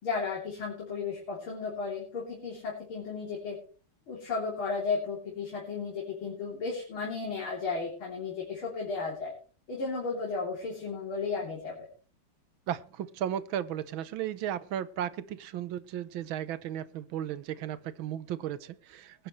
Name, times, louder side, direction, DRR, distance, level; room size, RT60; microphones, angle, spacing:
voice 1, 0.0-3.6 4.1-9.3 9.7-11.9, left 4 dB, 75° left, -3 dB, 4.1 m, -34 dB
voice 2, 12.7-19.3, right 10 dB, 75° right, 16 dB, 1.6 m, -35 dB
21.5 x 10.5 x 3.2 m, 0.40 s
omnidirectional pair, 2.3 m